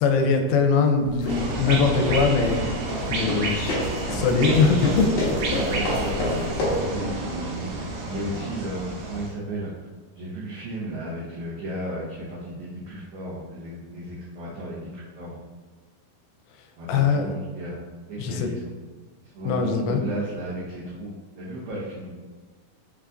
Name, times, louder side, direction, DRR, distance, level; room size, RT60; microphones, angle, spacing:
voice 1, 0.0-2.6 3.1-3.8 4.1-5.1 5.4-5.6 16.9-17.3 18.2-18.5 19.5-20.0, left 5 dB, 85° left, 5 dB, 2.5 m, -21 dB
sound 1, 1.0-6.9, left 1 dB, 65° left, 1.7 m, -28 dB
sound 2, 1.3-9.3, right 2 dB, 75° right, 1.9 m, -30 dB
voice 2, 5.6-7.8 8.1-9.9 10.1-15.4 16.8-17.8 18.1-18.7 19.2-22.1, right 1 dB, 90° right, -6 dB, 1.6 m, -34 dB
5.7 x 3.4 x 2.5 m, 1.4 s
omnidirectional pair, 4.4 m